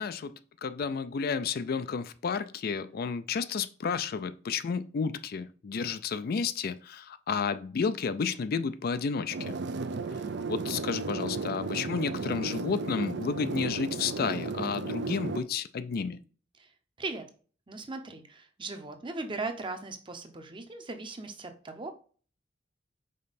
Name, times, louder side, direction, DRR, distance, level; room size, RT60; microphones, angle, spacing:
voice 1, 0.0-9.6 10.5-16.2, left 5 dB, 55° left, 0.4 m, -31 dB
sound 1, 9.3-15.4, right 3 dB, 65° right, 0.5 m, -34 dB
voice 2, 17.7-21.9, right 3 dB, 25° right, 0.7 m, -38 dB
5.3 x 4.4 x 4.1 m
head